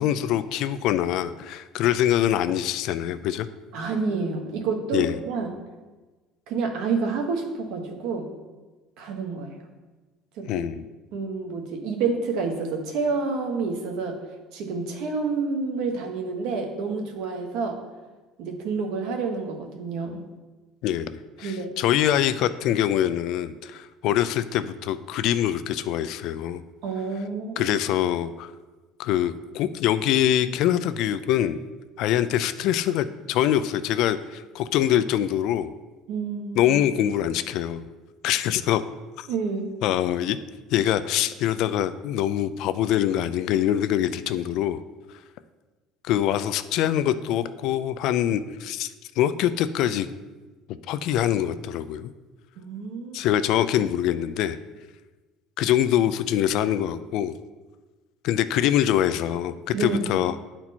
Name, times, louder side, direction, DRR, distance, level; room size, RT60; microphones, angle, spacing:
voice 1, 0.0-3.5 4.9-5.2 10.5-10.8 20.8-26.6 27.6-28.5 29.0-31.6 32.0-35.7 36.6-37.8 38.2-38.8 39.2-39.3 39.8-40.4 40.7-44.8 46.0-48.9 49.2-50.1 50.9-52.1 53.1-54.6 55.6-57.3 58.2-60.3, left 11 dB, 55° left, 12 dB, 0.3 m, -24 dB
voice 2, 3.7-5.6 6.5-8.3 9.0-9.6 10.4-10.7 11.1-14.2 14.5-17.8 18.4-20.2 21.4-21.7 26.8-27.8 36.1-36.7 39.3-39.7 52.6-53.2 59.7-60.1, right 4 dB, 65° right, 4 dB, 1.2 m, -29 dB
10.5 x 4.4 x 4.2 m, 1.2 s
cardioid pair, 165°, 0 cm